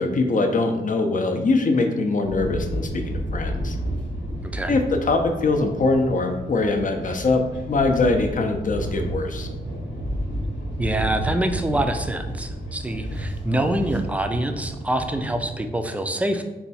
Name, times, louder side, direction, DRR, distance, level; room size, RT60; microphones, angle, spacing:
voice 1, 0.0-3.8 4.7-9.5, left 3 dB, 45° left, 5 dB, 0.6 m, -22 dB
sound 1, 2.2-15.6, equal, 85° left, 1.1 m, -31 dB
voice 2, 4.4-4.8 10.8-16.4, right 1 dB, 5° right, 6 dB, 0.4 m, -25 dB
4.2 x 2.3 x 4.1 m, 1.1 s
cardioid pair, 75°, 19 cm